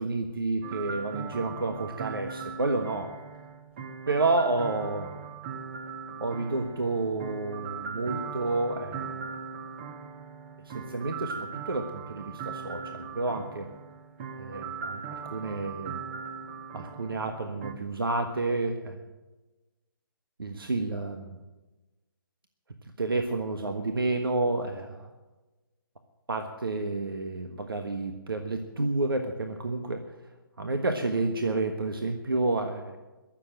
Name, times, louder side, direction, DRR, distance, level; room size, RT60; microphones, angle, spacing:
voice 1, 0.0-3.1 4.1-5.1 6.2-9.1 10.6-13.7 14.4-16.0 16.7-19.0 20.4-21.4 23.0-25.1 26.3-30.1 30.6-33.0, right 2 dB, 75° right, 6 dB, 1.4 m, -30 dB
sound 1, 0.6-17.7, right 6 dB, 30° right, 1.4 m, -39 dB
22.0 x 7.6 x 7.7 m, 1.2 s
figure-of-eight pair, 140°, 12 cm